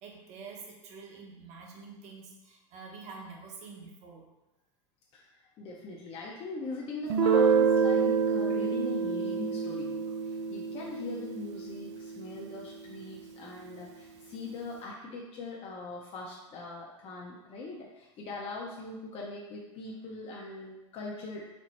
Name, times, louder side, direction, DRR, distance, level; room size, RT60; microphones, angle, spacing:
voice 1, 0.0-4.3, right 4 dB, 50° right, 0 dB, 0.9 m, -47 dB
voice 2, 5.1-21.4, left 2 dB, 40° left, -3 dB, 0.6 m, -41 dB
Guitar, 7.1-12.6, right 5 dB, 70° right, 0.4 m, -27 dB
4.2 x 2.0 x 4.2 m, 1.0 s
hypercardioid pair, 95°, 15 cm